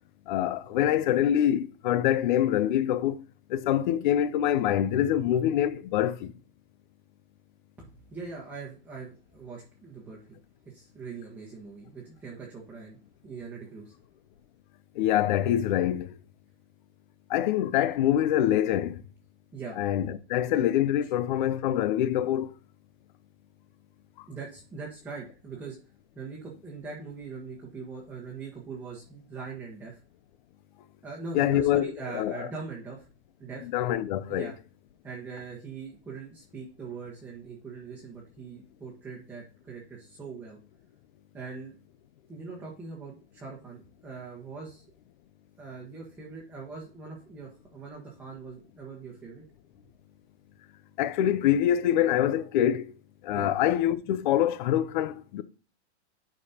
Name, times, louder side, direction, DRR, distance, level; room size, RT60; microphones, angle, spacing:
voice 1, 0.3-3.2 3.5-6.3 15.0-16.1 17.3-19.0 19.8-22.5 31.3-32.5 33.7-34.5 51.0-52.9 53.2-55.4, left 11 dB, 45° left, 0.6 m, -25 dB
voice 2, 7.8-10.4 10.7-13.0 13.2-13.9 19.5-19.8 24.3-25.8 26.1-30.0 31.0-33.1 33.4-33.7 34.3-34.5 35.0-40.6 41.3-41.7 42.3-44.8 45.6-49.4 53.3-53.5, right 4 dB, 5° right, 1.3 m, -41 dB
11.0 x 5.3 x 2.8 m
hypercardioid pair, 150°, 34 cm